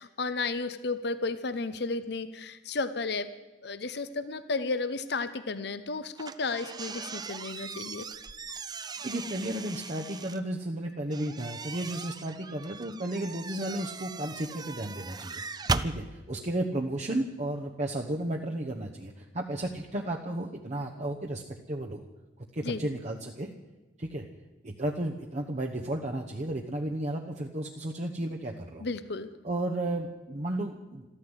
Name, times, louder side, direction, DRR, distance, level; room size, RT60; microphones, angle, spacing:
voice 1, 0.0-3.3 3.6-8.1 22.6-22.8 28.8-29.3, left 3 dB, 65° left, 13 dB, 0.8 m, -33 dB
sound 1, 6.2-10.4 11.1-15.9, right 4 dB, 20° right, 0.6 m, -38 dB
voice 2, 9.0-15.4 15.8-21.4 21.7-22.0 22.5-23.5 24.0-24.2 24.6-28.9 29.4-31.1, right 1 dB, 40° right, 1 dB, 1.0 m, -33 dB
13.5 x 13.0 x 8.0 m, 1.2 s
head